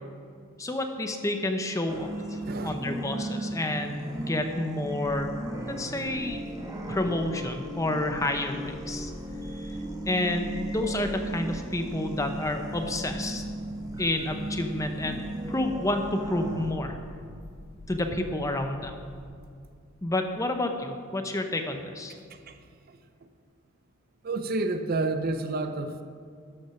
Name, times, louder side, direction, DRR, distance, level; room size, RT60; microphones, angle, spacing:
voice 1, 0.6-2.4 2.6-5.3 5.7-6.4 6.9-9.1 10.1-13.4 14.0-17.0 17.9-19.0 20.0-22.1, left 1 dB, 15° left, 5 dB, 0.6 m, -30 dB
sound 1, 1.9-16.7, right 1 dB, 15° right, 1.2 m, -36 dB
voice 2, 2.4-2.8 22.1-22.6 22.9-23.0 24.2-26.0, right 3 dB, 45° right, 9 dB, 0.5 m, -30 dB
sound 2, 5.0-19.3, left 1 dB, 75° left, 2.8 m, -46 dB
12.5 x 6.0 x 5.7 m, 2.3 s
head